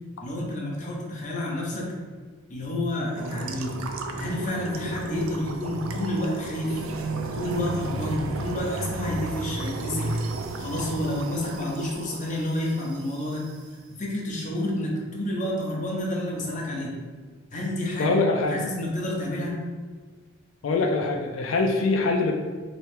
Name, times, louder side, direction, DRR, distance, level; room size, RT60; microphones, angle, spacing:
voice 1, 0.2-1.9 2.5-3.8 4.2-6.8 7.3-10.1 10.6-13.5 14.0-17.0 17.5-18.2 18.5-19.6, left 1 dB, 40° left, -3 dB, 0.8 m, -29 dB
sound 1, 3.2-13.6, right 3 dB, 90° right, 0.4 m, -33 dB
voice 2, 18.0-18.6 19.3-19.4 20.6-22.3, left 3 dB, 75° left, 2 dB, 0.4 m, -23 dB
3.2 x 3.0 x 3.3 m, 1.5 s
head